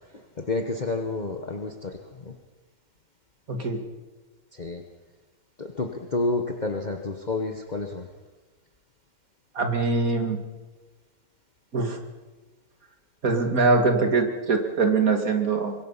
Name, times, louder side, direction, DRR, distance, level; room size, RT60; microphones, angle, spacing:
voice 1, 0.1-2.3 4.5-4.8 5.6-8.1, left 3 dB, 35° left, 4 dB, 1.3 m, -30 dB
voice 2, 3.5-3.8 9.5-10.4 11.7-12.0 13.2-15.7, right 4 dB, 85° right, 5 dB, 2.7 m, -23 dB
25.0 x 21.5 x 5.7 m, 1.2 s
omnidirectional pair, 1.5 m